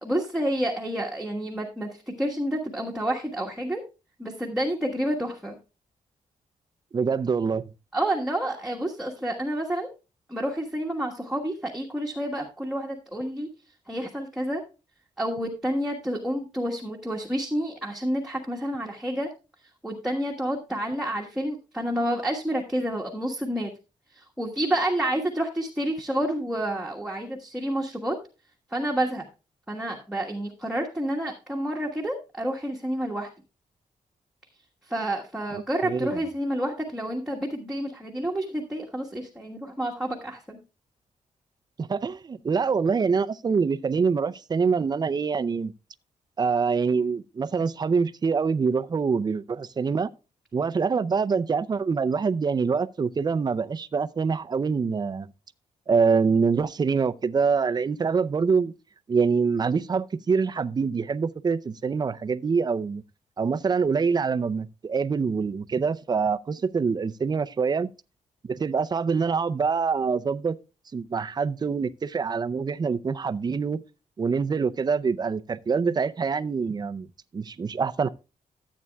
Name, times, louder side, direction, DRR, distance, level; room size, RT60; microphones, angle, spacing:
voice 1, 0.0-3.8 4.2-5.6 7.9-9.9 10.3-13.5 13.9-14.6 15.2-19.3 19.8-23.7 24.1-28.2 28.7-29.2 29.7-33.3 34.8-40.6, right 1 dB, 5° right, 1.4 m, -29 dB
voice 2, 6.9-7.7 35.5-36.2 41.8-45.7 46.4-50.1 50.5-55.3 55.9-58.7 59.1-63.0 63.4-67.9 68.5-70.6 70.9-73.8 74.2-77.1 77.3-78.1, right 5 dB, 30° right, 0.5 m, -25 dB
13.5 x 8.3 x 2.3 m
cardioid pair, 125°, 14 cm